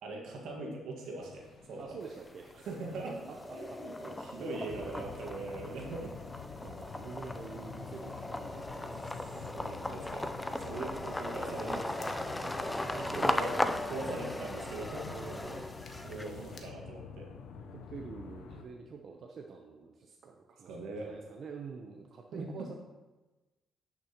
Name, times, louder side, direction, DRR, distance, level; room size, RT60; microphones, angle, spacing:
voice 1, 0.0-2.0 2.6-3.1 3.5-6.1 8.4-8.9 9.5-12.7 13.0-13.5 13.9-15.1 16.0-17.3 20.6-21.2 22.3-22.7, right 2 dB, 80° right, 0 dB, 1.6 m, -41 dB
sound 1, 1.2-16.6, left 4 dB, 60° left, 1.0 m, -58 dB
voice 2, 1.8-2.6 2.9-3.8 4.4-4.9 5.5-6.0 6.6-9.0 9.3-9.7 10.9-11.1 12.7-14.4 15.1-15.8 16.1-16.6 17.7-22.7, right 5 dB, 55° right, 2 dB, 0.6 m, -47 dB
sound 2, 2.0-2.7 3.1-16.6, left 1 dB, 10° left, 0.4 m, -37 dB
sound 3, 4.7-18.6, left 6 dB, 80° left, 0.6 m, -47 dB
10.5 x 6.1 x 2.9 m, 1.2 s
cardioid pair, 90°, 0 cm